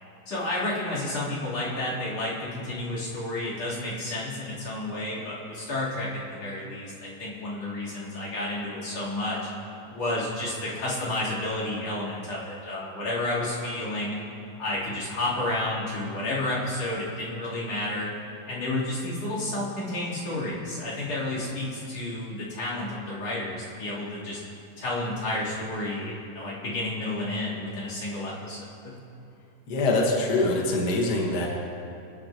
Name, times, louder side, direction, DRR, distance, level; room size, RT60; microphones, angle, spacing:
voice 1, 0.3-9.5 9.9-14.2 14.6-18.1 18.5-24.4 24.8-28.6 28.8-29.0, left 1 dB, 45° left, -8 dB, 4.5 m, -31 dB
voice 2, 29.7-31.5, left 2 dB, 70° left, -1 dB, 0.9 m, -24 dB
25.5 x 9.5 x 3.0 m, 2.7 s
omnidirectional pair, 4.2 m